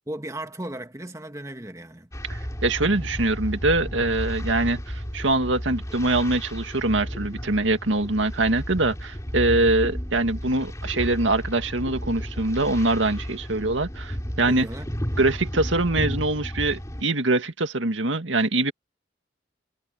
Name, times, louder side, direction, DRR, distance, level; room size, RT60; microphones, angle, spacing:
voice 1, 0.1-2.1 14.5-14.9, right 1 dB, 15° right, 1.6 m, -35 dB
sound 1, 2.1-17.0, equal, 15° left, 3.6 m, -33 dB
voice 2, 2.3-14.7 15.2-18.7, right 2 dB, 85° right, 2.0 m, -23 dB
head